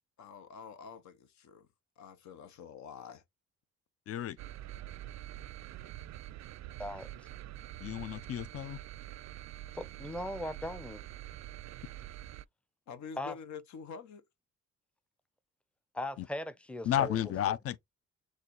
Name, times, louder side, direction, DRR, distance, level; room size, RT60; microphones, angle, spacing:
voice 1, 0.2-1.7 2.0-3.2 12.9-14.3, left 6 dB, 70° left, 0.9 m, -47 dB
voice 2, 4.1-4.4 7.8-8.8 16.8-17.8, left 11 dB, 50° left, 0.6 m, -32 dB
sound 1, 4.4-12.5, right 13 dB, 65° right, 0.4 m, -46 dB
voice 3, 6.8-7.3 9.8-11.0 13.2-13.4 15.9-17.2 17.5-17.6, left 1 dB, 5° left, 0.6 m, -39 dB
6.4 x 2.4 x 3.0 m
cardioid pair, 90°, 30 cm